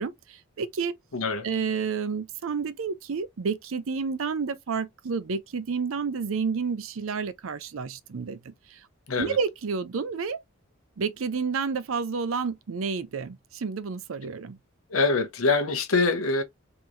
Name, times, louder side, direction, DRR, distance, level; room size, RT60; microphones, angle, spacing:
voice 1, 0.0-0.9 1.4-8.8 9.2-10.4 11.0-14.6, right 5 dB, 70° right, 0.5 m, -30 dB
voice 2, 1.1-1.5 9.1-9.4 14.9-16.4, left 3 dB, 80° left, 0.9 m, -24 dB
3.8 x 3.0 x 2.5 m
head